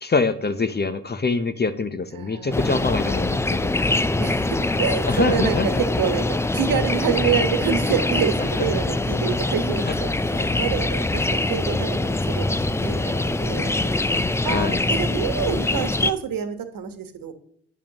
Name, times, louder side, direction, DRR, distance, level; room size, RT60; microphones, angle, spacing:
voice 1, 0.0-3.6 5.1-5.8 8.6-8.7 9.9-10.0 10.3-10.5 14.5-14.8, left 4 dB, 25° left, 14 dB, 0.7 m, -25 dB
voice 2, 2.1-2.7 4.2-17.3, right 7 dB, 55° right, 8 dB, 1.3 m, -27 dB
sound 1, 2.5-16.1, left 2 dB, 5° left, 0.3 m, -23 dB
9.0 x 7.0 x 3.0 m, 0.68 s
hypercardioid pair, 50°, 39 cm